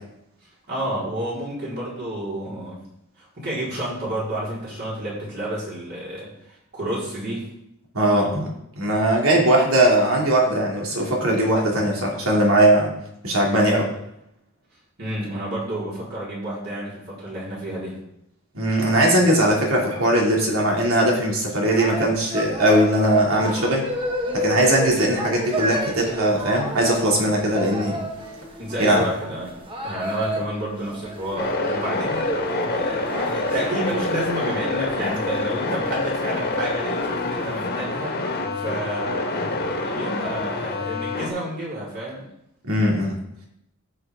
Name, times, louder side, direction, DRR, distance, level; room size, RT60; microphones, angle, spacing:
voice 1, 0.7-2.8 3.2-7.5 15.0-18.0 28.6-32.2 32.5-42.3, right 1 dB, 50° right, -7 dB, 4.4 m, -30 dB
voice 2, 7.9-8.5 8.8-12.9 13.2-13.9 18.5-23.9 24.3-28.0 28.8-29.0 42.6-43.2, right 1 dB, 90° right, -1 dB, 2.7 m, -19 dB
sound 1, 21.7-37.7, equal, 25° right, 1.2 m, -32 dB
sound 2, 31.4-41.3, left 2 dB, 50° left, 1.4 m, -26 dB
14.0 x 6.5 x 3.7 m, 0.80 s
head